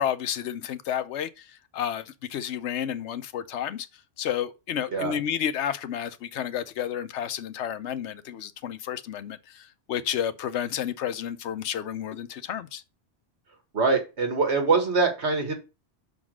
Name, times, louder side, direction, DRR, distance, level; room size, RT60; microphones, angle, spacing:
voice 1, 0.0-1.5 1.7-3.9 4.2-12.8, left 9 dB, 80° left, 0.9 m, -31 dB
voice 2, 13.7-15.5, right 4 dB, 70° right, 1.9 m, -23 dB
6.0 x 3.9 x 6.1 m
omnidirectional pair, 1.2 m